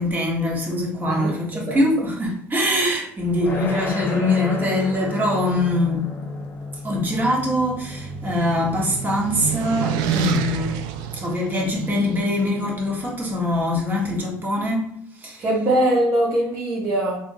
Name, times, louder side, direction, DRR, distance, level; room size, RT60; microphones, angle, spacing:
voice 1, 0.0-6.0 6.8-10.7 11.1-14.9 15.2-15.4, left 1 dB, 25° right, 1.2 m, -23 dB
sound 1, 3.4-14.4, left 2 dB, 25° left, 0.7 m, -35 dB
sound 2, 6.9-12.1, right 8 dB, 70° right, 0.3 m, -29 dB
voice 2, 15.4-17.2, right 1 dB, 45° right, 0.8 m, -21 dB
3.6 x 2.5 x 2.6 m
supercardioid pair, 100°, 7 cm